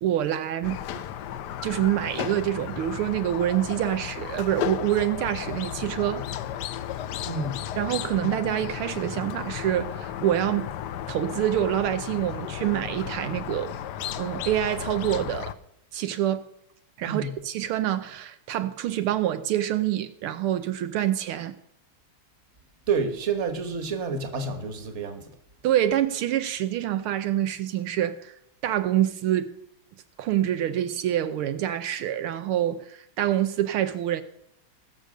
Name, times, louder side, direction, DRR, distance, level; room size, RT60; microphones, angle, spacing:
voice 1, 0.0-1.0 1.6-6.2 7.8-10.7 11.1-13.8 14.1-15.5 15.9-16.5 17.0-21.6 25.6-28.3 28.6-29.5 30.2-34.2, right 12 dB, 80° right, 1.6 m, -26 dB
Squeak, 0.6-15.5, left 11 dB, 70° left, 1.0 m, -34 dB
voice 2, 7.3-7.7 17.0-17.3 22.9-25.3, right 4 dB, 35° right, 1.6 m, -29 dB
19.5 x 6.6 x 6.4 m
omnidirectional pair, 2.4 m